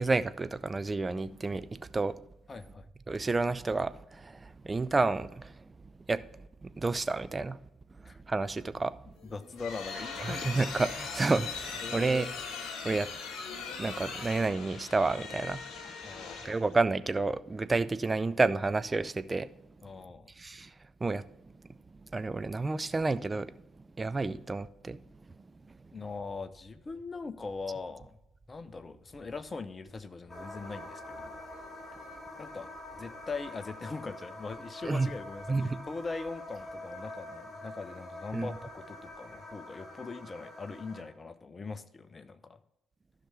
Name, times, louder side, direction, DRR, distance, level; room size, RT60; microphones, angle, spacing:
voice 1, 0.0-2.2 3.1-5.6 6.1-6.2 6.6-7.6 8.3-9.0 10.3-12.3 12.8-13.1 13.8-15.7 16.4-19.5 20.4-20.7 21.0-21.2 22.1-23.5 24.0-25.0 25.7-25.8 34.8-35.1 35.5-35.8 38.3-38.5, right 3 dB, 25° right, 0.5 m, -30 dB
voice 2, 2.5-2.9 8.0-8.2 9.2-10.5 11.8-12.2 16.0-16.6 19.8-20.3 25.9-28.2 28.5-31.4 32.1-42.6, left 4 dB, 30° left, 0.8 m, -41 dB
sound 1, 9.2-16.7, left 5 dB, 55° left, 1.6 m, -40 dB
sound 2, 30.3-41.0, left 1 dB, 15° left, 4.0 m, -45 dB
13.5 x 5.8 x 3.4 m
figure-of-eight pair, 45°, 0 cm